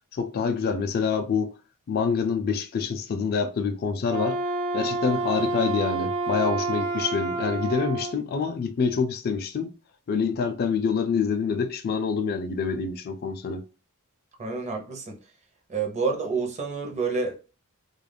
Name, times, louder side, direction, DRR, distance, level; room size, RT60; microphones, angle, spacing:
voice 1, 0.1-1.5 1.9-4.4 4.7-9.7 10.1-13.6, left 5 dB, 45° left, 0.3 m, -26 dB
Wind instrument woodwind instrument, 4.0-8.2, right 3 dB, 80° right, 0.8 m, -29 dB
voice 2, 14.4-15.1 15.7-17.4, right 4 dB, 30° right, 0.6 m, -28 dB
2.3 x 2.1 x 3.3 m
head